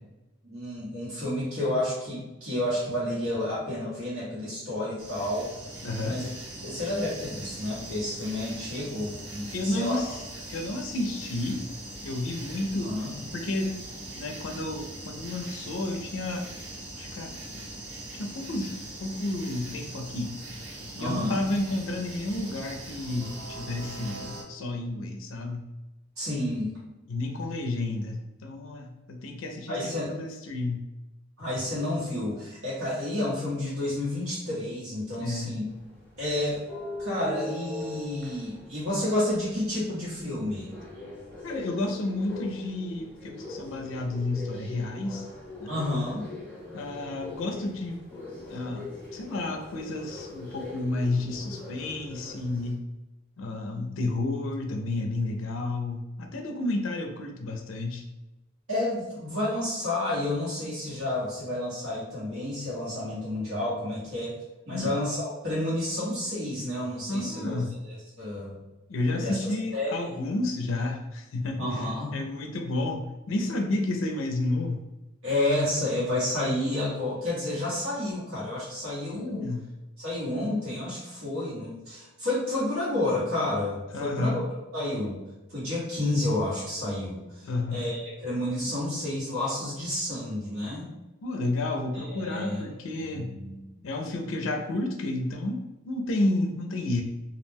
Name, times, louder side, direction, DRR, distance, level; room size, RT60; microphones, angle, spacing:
voice 1, 0.4-5.5 6.1-6.3 6.6-10.0 12.8-13.1 21.0-21.4 26.2-26.7 29.7-30.1 31.4-35.6 36.2-36.6 37.0-40.7 45.7-46.3 58.7-64.4 64.7-67.6 68.2-68.6 69.1-70.1 71.6-72.1 75.2-79.5 80.0-84.4 84.7-85.2 85.5-87.4 87.7-90.9 91.9-92.6 93.1-93.6, left 1 dB, 85° right, -8 dB, 1.1 m, -30 dB
sound 1, 5.0-24.4, right 1 dB, 55° right, 1.1 m, -41 dB
voice 2, 5.8-6.2 9.5-10.2 10.5-11.6 12.0-12.9 13.3-13.7 14.2-16.5 17.0-17.3 18.1-20.3 20.9-25.6 27.1-30.8 35.2-35.6 41.4-45.3 45.6-45.8 46.7-48.0 48.5-48.9 49.1-52.8 53.4-58.1 64.7-64.9 67.1-67.8 68.9-74.8 79.1-79.6 83.9-84.4 87.4-87.8 91.2-93.4 93.8-97.0, left 2 dB, 65° left, 3 dB, 0.4 m, -31 dB
sound 2, 35.7-52.7, left 2 dB, 5° left, 0.5 m, -41 dB
2.3 x 2.1 x 3.3 m, 1.0 s
head